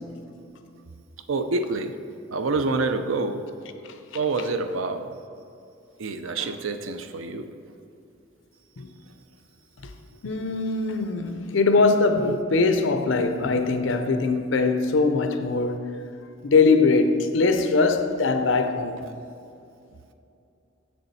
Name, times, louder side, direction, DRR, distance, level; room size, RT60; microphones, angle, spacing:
voice 1, 1.3-2.0 2.3-3.5 4.1-5.1 6.0-7.5, right 3 dB, 90° right, 0.5 m, -27 dB
voice 2, 10.2-15.8 16.4-19.0, left 3 dB, 75° left, 0.6 m, -21 dB
7.3 x 6.9 x 4.1 m
head